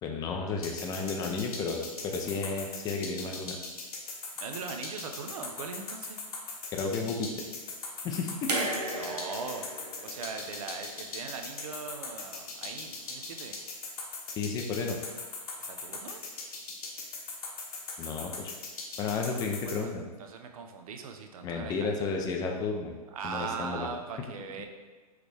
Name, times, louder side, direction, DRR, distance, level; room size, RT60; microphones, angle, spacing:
voice 1, 0.0-3.6 6.7-7.3 8.0-8.5 14.4-15.0 18.0-18.5 19.0-20.0 21.4-22.9 23.2-23.9 24.6-24.7, left 4 dB, 20° left, 2 dB, 0.4 m, -32 dB
sound 1, 0.6-19.8, left 4 dB, 65° left, 1.0 m, -39 dB
voice 2, 4.4-6.2 9.0-9.7 10.0-13.5 15.6-16.2 19.0-19.4 19.7-19.9 20.2-21.9 23.1-24.7, right 5 dB, 60° right, 5 dB, 0.6 m, -40 dB
sound 2, 8.5-11.6 12.8-12.9, right 1 dB, 85° right, 1.2 m, -36 dB
5.0 x 3.1 x 3.3 m, 1.3 s
hypercardioid pair, 120°, 20 cm